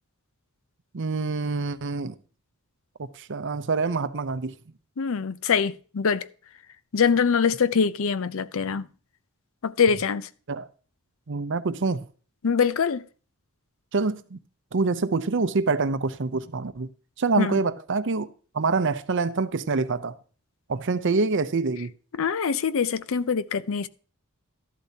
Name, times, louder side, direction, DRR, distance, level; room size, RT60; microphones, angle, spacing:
voice 1, 0.9-2.2 3.0-4.5 10.5-10.7 11.3-12.0 13.9-14.4 14.7-16.9 17.2-18.3 18.5-20.2 20.7-21.9, right 4 dB, 60° right, 0.7 m, -26 dB
voice 2, 5.0-6.3 6.9-8.9 9.6-10.3 12.4-13.0 17.4-17.6 22.2-23.9, left 6 dB, 65° left, 0.5 m, -24 dB
13.0 x 11.5 x 2.8 m
head